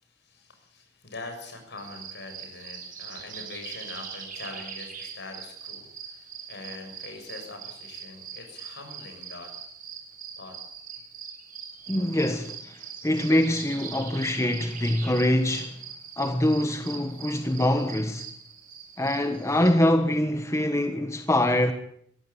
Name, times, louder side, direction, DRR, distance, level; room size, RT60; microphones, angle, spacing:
voice 1, 0.0-9.7 10.4-10.6, left 3 dB, 60° left, 7.0 m, -43 dB
sound 1, 1.8-19.7, right 7 dB, 45° right, 5.9 m, -42 dB
voice 2, 11.9-15.8 16.2-18.3 19.0-21.7, left 1 dB, 15° left, 1.3 m, -24 dB
22.5 x 16.0 x 8.6 m
head